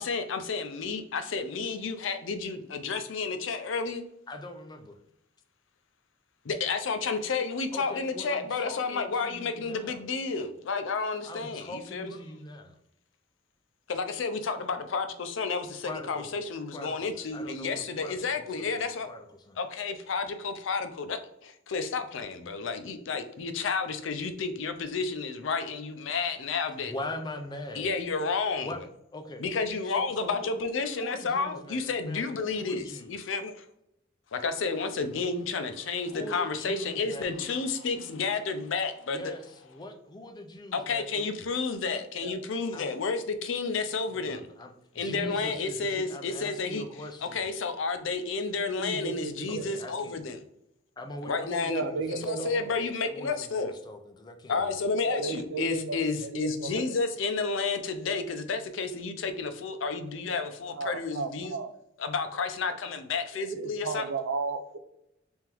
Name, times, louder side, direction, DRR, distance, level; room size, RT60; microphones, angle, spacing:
voice 1, 0.0-4.0 6.4-12.2 13.9-19.1 19.6-26.9 27.8-28.7 29.4-33.6 34.3-39.3 40.7-44.5 45.0-46.8 47.2-50.4 51.2-51.8 52.2-53.7 54.5-61.6 62.0-64.0, left 4 dB, 75° left, 9 dB, 0.5 m, -31 dB
voice 2, 4.3-5.0 7.7-10.0 11.2-12.8 15.8-16.4 16.7-19.6 26.8-28.0 28.6-28.8 29.1-29.4 29.8-30.7 31.0-33.3 36.1-37.6 39.1-41.3 42.7-42.9 44.1-47.5 49.5-50.4 51.0-52.7 53.1-54.9, left 1 dB, 20° left, 6 dB, 0.4 m, -42 dB
voice 3, 48.8-49.7 51.6-52.8 55.0-56.9 60.7-61.7 63.3-64.8, right 4 dB, 75° right, 9 dB, 0.4 m, -34 dB
3.5 x 3.4 x 3.0 m, 0.78 s
head